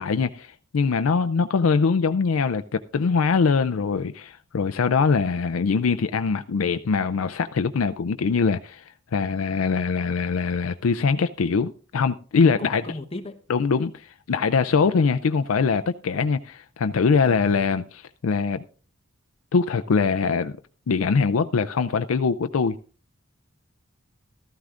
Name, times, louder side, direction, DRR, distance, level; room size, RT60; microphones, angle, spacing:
voice 1, 0.0-12.8 13.5-18.6 19.5-20.6 20.9-22.8, left 5 dB, 90° left, 0.5 m, -23 dB
voice 2, 12.5-13.4 14.7-14.9 17.2-17.6, left 2 dB, 30° left, 1.0 m, -37 dB
15.0 x 13.5 x 2.5 m
head